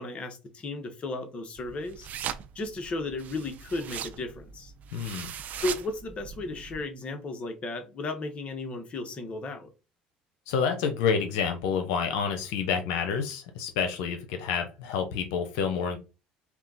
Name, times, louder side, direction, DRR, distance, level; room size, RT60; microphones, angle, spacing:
voice 1, 0.0-2.1 2.5-4.7 5.6-9.7, left 2 dB, 40° left, 1.2 m, -34 dB
sound 1, 1.6-6.8, right 9 dB, 55° right, 0.5 m, -40 dB
voice 2, 4.9-5.3 10.5-16.0, left 6 dB, 90° left, 0.7 m, -28 dB
4.3 x 2.3 x 4.0 m
supercardioid pair, 95°, 3 cm